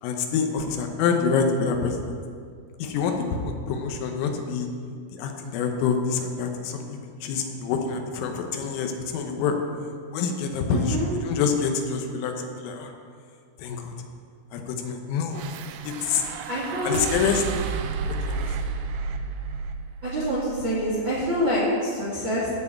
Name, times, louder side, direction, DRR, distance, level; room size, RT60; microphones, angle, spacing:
voice 1, 0.0-2.0 2.8-4.7 5.1-9.5 10.1-12.9 13.6-13.9 14.5-15.5 15.9-16.2 16.9-17.4 18.3-18.7, left 5 dB, 85° left, 4 dB, 3.7 m, -26 dB
voice 2, 10.7-11.1 16.5-17.0 20.0-22.5, equal, 55° right, -7 dB, 1.3 m, -26 dB
sound 1, 15.3-21.7, right 5 dB, 80° right, 3.0 m, -32 dB
14.0 x 4.9 x 8.1 m, 2.1 s
omnidirectional pair, 5.8 m